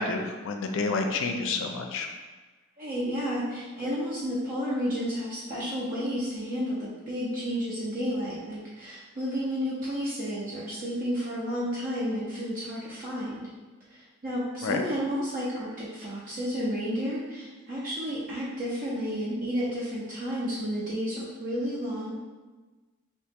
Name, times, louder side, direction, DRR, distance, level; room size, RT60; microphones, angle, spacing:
voice 1, 0.0-2.1 14.6-14.8, left 3 dB, 60° left, 4 dB, 0.4 m, -29 dB
voice 2, 2.8-13.5 13.9-14.0 14.2-22.1, equal, 40° right, -7 dB, 0.6 m, -31 dB
2.9 x 2.8 x 3.5 m, 1.3 s
head